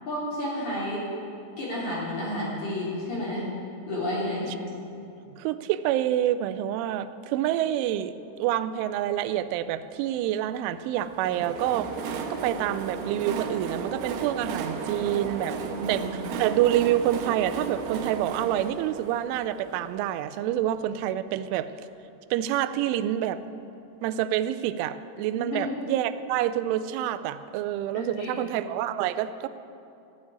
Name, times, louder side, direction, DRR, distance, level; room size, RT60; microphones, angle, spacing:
voice 1, 0.1-1.0 1.6-3.4 3.9-4.5 14.8-14.9 15.7-16.3 25.4-25.7 27.9-28.3, left 1 dB, 40° left, -7 dB, 4.3 m, -31 dB
voice 2, 5.4-11.9 12.3-15.6 15.9-21.7 22.3-23.4 24.0-29.5, right 12 dB, 90° right, 12 dB, 3.0 m, -27 dB
Train, 10.9-20.6, right 5 dB, 75° right, 2.7 m, -34 dB
14.0 x 7.3 x 9.7 m, 2.6 s
omnidirectional pair, 5.4 m